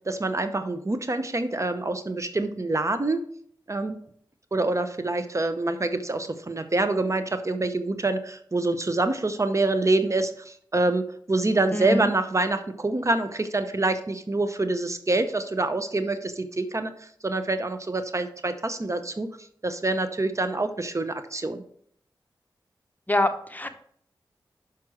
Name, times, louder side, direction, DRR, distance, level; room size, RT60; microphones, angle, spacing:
voice 1, 0.0-3.2 3.7-4.0 4.5-19.3 19.6-21.6, right 2 dB, 35° right, 9 dB, 0.7 m, -26 dB
voice 2, 11.7-12.1 23.1-23.7, left 1 dB, 20° left, 8 dB, 0.9 m, -24 dB
6.1 x 5.9 x 4.7 m, 0.63 s
cardioid pair, 40°, 9 cm